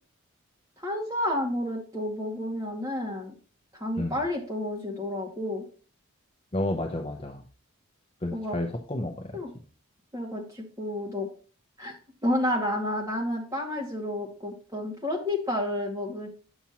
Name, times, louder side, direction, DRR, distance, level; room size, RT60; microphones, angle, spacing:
voice 1, 0.8-3.3 3.7-5.6 8.3-8.6 9.3-9.5 10.1-11.3 11.8-11.9 12.2-16.3, left 1 dB, 15° right, -2 dB, 2.1 m, -30 dB
voice 2, 6.5-7.4 8.2-9.4, left 1 dB, 25° left, 4 dB, 0.7 m, -31 dB
8.8 x 7.1 x 2.9 m, 0.38 s
head